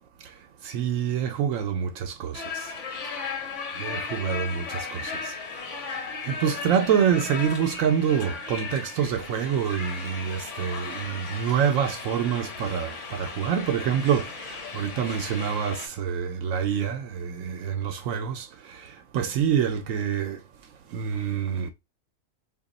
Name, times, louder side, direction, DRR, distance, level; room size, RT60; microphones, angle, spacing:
voice 1, 0.6-2.7 3.8-5.3 6.3-18.9 19.1-20.4 20.9-21.7, right 8 dB, 80° right, 1.0 m, -26 dB
sound 1, 2.3-15.9, left 5 dB, 65° left, 1.2 m, -36 dB
2.9 x 2.5 x 3.9 m
omnidirectional pair, 1.4 m